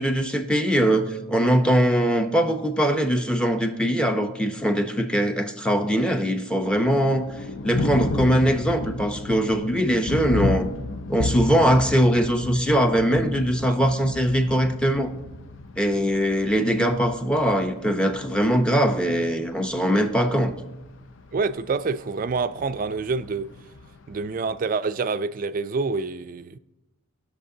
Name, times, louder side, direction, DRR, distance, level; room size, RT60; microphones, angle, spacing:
voice 1, 0.0-7.3 7.6-10.7 11.1-15.1 15.8-20.5, equal, 5° left, 0.7 m, -21 dB
Thunder, 6.5-24.5, left 2 dB, 60° left, 0.5 m, -33 dB
voice 2, 21.3-23.5 24.1-26.6, right 4 dB, 40° right, 0.4 m, -27 dB
19.5 x 6.6 x 2.7 m
head